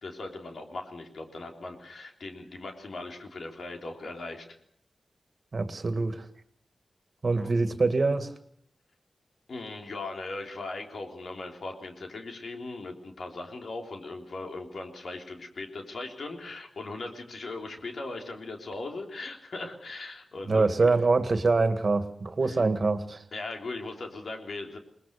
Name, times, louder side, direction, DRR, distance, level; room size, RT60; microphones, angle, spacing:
voice 1, 0.0-4.5 7.3-7.5 9.5-20.9 22.4-22.6 23.3-24.8, left 2 dB, 75° left, 3 dB, 3.5 m, -39 dB
voice 2, 5.5-6.3 7.2-8.3 20.5-23.2, right 3 dB, 55° right, 10 dB, 1.9 m, -25 dB
21.5 x 20.0 x 6.7 m, 0.66 s
cardioid pair, 45°, 0 cm